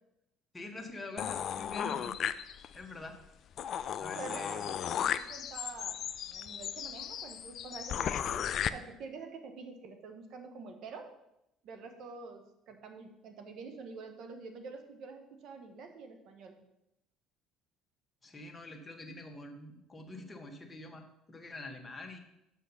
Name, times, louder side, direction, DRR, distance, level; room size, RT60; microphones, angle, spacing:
voice 1, 0.5-2.2 2.7-3.2 3.7-4.6 18.2-22.2, left 2 dB, 20° left, 3 dB, 1.3 m, -45 dB
sound 1, 1.2-2.9 3.3-3.4 3.6-8.7, left 9 dB, 55° left, 0.4 m, -35 dB
voice 2, 4.1-11.1 11.6-16.6, right 4 dB, 60° right, 6 dB, 1.2 m, -47 dB
6.3 x 5.8 x 5.5 m, 0.85 s
supercardioid pair, 80°, 0 cm